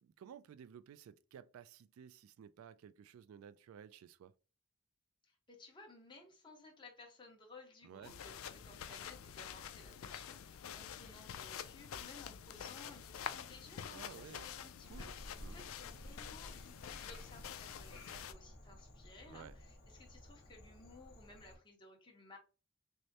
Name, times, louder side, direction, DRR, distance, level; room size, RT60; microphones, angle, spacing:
voice 1, 0.0-4.3 7.8-8.1 13.9-14.5 14.9-15.1 15.4-15.6 19.3-19.6, right 8 dB, 85° right, 0.3 m, -55 dB
voice 2, 5.2-22.4, left 3 dB, 25° left, 1.1 m, -58 dB
sound 1, 8.0-18.3, left 8 dB, 75° left, 0.4 m, -48 dB
Frog, 14.8-21.5, left 1 dB, 45° left, 2.3 m, -54 dB
6.2 x 2.1 x 2.8 m
head